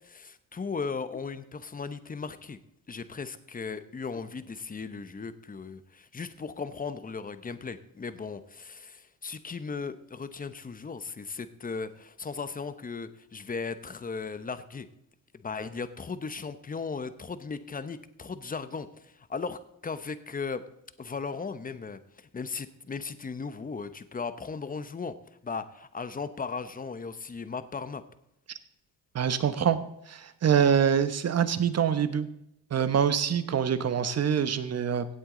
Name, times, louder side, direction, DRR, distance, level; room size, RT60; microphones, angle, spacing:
voice 1, 0.0-2.6 2.9-14.9 15.3-20.6 21.0-25.2 25.4-28.0, left 5 dB, 25° left, 12 dB, 0.9 m, -37 dB
voice 2, 29.1-29.8 30.1-32.3 32.7-35.1, right 8 dB, 45° right, 12 dB, 1.1 m, -25 dB
16.5 x 8.1 x 3.9 m, 0.79 s
cardioid pair, 95°, 35 cm